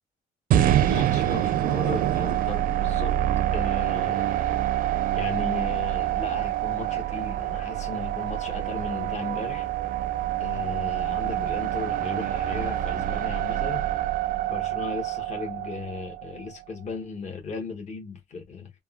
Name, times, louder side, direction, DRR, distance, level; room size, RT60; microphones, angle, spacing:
sound 1, 0.5-16.6, right 12 dB, 55° right, 0.4 m, -26 dB
voice 1, 0.9-3.2 3.5-4.6 5.1-9.7 10.4-13.8 14.5-18.7, left 4 dB, 45° left, 1.0 m, -36 dB
3.4 x 2.1 x 2.3 m
cardioid pair, 110°, 17 cm